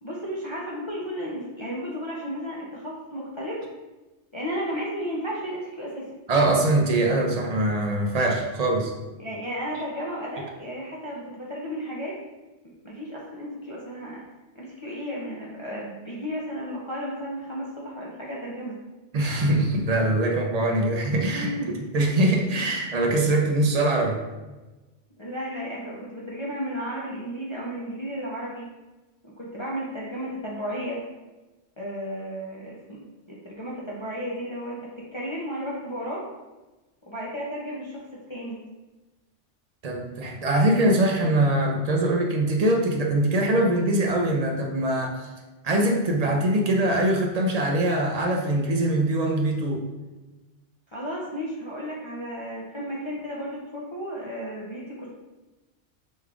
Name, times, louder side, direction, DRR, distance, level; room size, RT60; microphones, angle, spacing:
voice 1, 0.0-3.6 4.3-6.1 9.2-12.2 12.6-14.2 14.5-18.8 19.4-19.5 21.3-21.8 22.6-22.8 25.2-28.7 29.2-31.0 31.8-33.0 33.3-36.2 37.1-38.6 50.9-55.1, equal, 35° left, -5 dB, 0.5 m, -33 dB
voice 2, 6.3-8.9 19.1-21.5 21.9-24.2 39.8-45.3 45.6-49.8, right 1 dB, 50° right, 1 dB, 0.5 m, -23 dB
5.3 x 2.4 x 3.3 m, 1.1 s
omnidirectional pair, 1.2 m